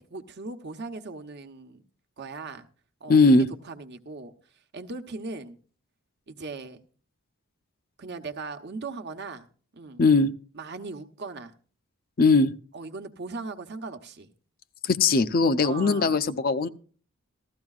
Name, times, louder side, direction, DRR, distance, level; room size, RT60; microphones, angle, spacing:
voice 1, 0.0-1.8 2.2-2.7 3.0-4.3 4.7-5.6 6.3-6.8 8.0-9.5 9.7-10.0 10.5-11.5 12.7-14.3 15.6-16.2, right 3 dB, 50° right, 1.0 m, -38 dB
voice 2, 3.1-3.5 10.0-10.3 12.2-12.5 14.8-16.7, left 3 dB, 45° left, 0.5 m, -20 dB
15.5 x 13.5 x 2.4 m
head